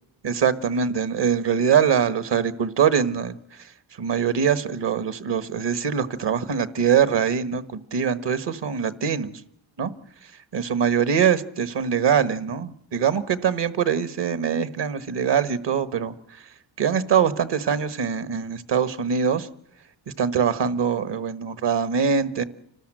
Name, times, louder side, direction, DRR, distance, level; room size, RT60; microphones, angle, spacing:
voice 1, 0.2-9.4 9.8-9.9 10.5-16.1 16.8-19.5 20.2-22.4, right 7 dB, 60° right, 13 dB, 1.5 m, -23 dB
29.0 x 13.0 x 7.7 m, 0.72 s
cardioid pair, 65°, 48 cm